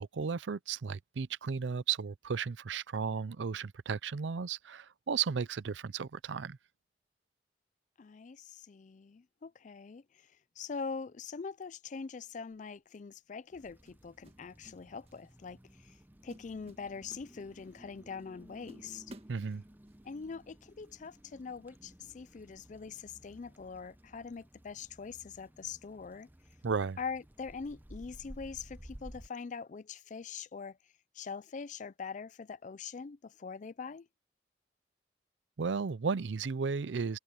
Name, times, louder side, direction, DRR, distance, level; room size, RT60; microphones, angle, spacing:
voice 1, 0.0-6.6 19.3-19.6 26.6-27.0 35.6-37.2, right 5 dB, 85° right, 0.5 m, -34 dB
voice 2, 8.0-16.0 16.2-19.1 20.0-26.3 27.0-30.8 31.1-34.1, left 5 dB, 45° left, 0.4 m, -43 dB
sound 1, 12.5-12.8 13.9-14.8 15.1-15.4 15.8-16.0 16.3-17.8 18.2-18.3 18.7-20.0, right 1 dB, 35° right, 1.6 m, -54 dB
sound 2, 13.5-29.3, equal, 10° right, 0.7 m, -55 dB
head